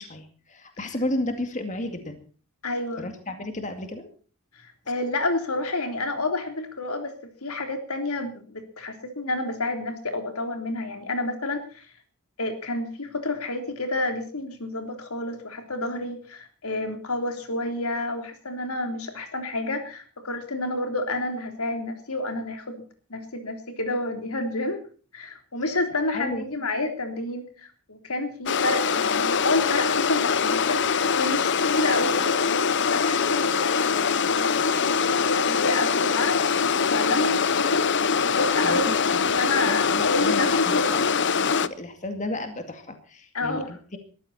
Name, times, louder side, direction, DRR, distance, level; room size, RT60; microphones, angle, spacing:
voice 1, 0.0-2.2 3.0-4.1 26.1-26.5 38.6-41.1 41.6-44.0, left 1 dB, 35° left, 6 dB, 2.2 m, -33 dB
voice 2, 2.6-3.1 4.6-11.9 12.4-22.7 23.1-24.8 25.1-30.8 31.2-34.1 34.4-37.9 38.2-41.1 43.3-43.7, left 2 dB, 80° left, 6 dB, 3.6 m, -29 dB
sound 1, 28.5-41.7, left 6 dB, 55° left, 0.8 m, -23 dB
21.0 x 14.0 x 4.3 m, 0.40 s
head